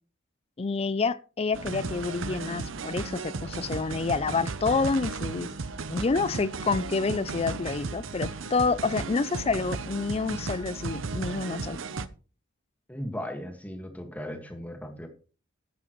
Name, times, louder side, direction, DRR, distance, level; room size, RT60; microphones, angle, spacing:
voice 1, 0.6-5.5 5.9-11.8, left 4 dB, 30° left, 0.4 m, -28 dB
sound 1, 1.5-12.1, right 4 dB, 75° right, 0.7 m, -35 dB
voice 2, 12.9-15.1, equal, 10° left, 1.7 m, -37 dB
13.0 x 11.0 x 3.1 m
head